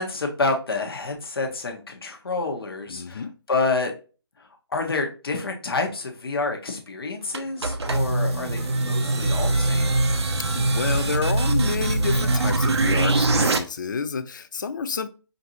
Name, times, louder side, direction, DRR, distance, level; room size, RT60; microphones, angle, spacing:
voice 1, 0.0-3.2 3.5-3.9 4.7-9.8, left 3 dB, 60° left, 1.2 m, -28 dB
voice 2, 2.9-3.3 10.4-15.1, left 5 dB, 45° left, 0.4 m, -29 dB
sound 1, 7.2-7.9 8.5-10.7, right 3 dB, 35° right, 0.9 m, -43 dB
sound 2, 7.3-13.6, right 2 dB, 75° right, 0.7 m, -22 dB
5.1 x 2.7 x 2.9 m
figure-of-eight pair, 160°, 14 cm